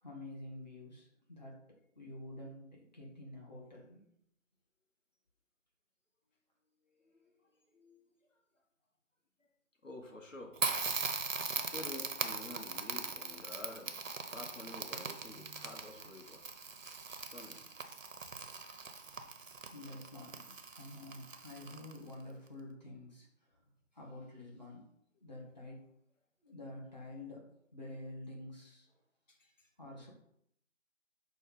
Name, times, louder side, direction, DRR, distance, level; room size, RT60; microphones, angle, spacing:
voice 1, 0.0-1.6 2.0-4.0 19.7-23.6 23.9-24.9 25.1-25.9 26.4-27.4 27.7-28.9 29.8-30.1, left 1 dB, 35° left, -3 dB, 0.9 m, -49 dB
voice 2, 7.0-7.3 7.7-8.4 9.4-9.5 9.8-10.6 11.5-13.9 14.2-16.4 17.1-17.6 29.3-29.7, left 2 dB, 70° left, 2 dB, 1.1 m, -50 dB
Crackle, 10.6-22.1, right 4 dB, 75° right, 0.6 m, -40 dB
5.2 x 2.3 x 3.8 m, 0.74 s
figure-of-eight pair, 165°, 39 cm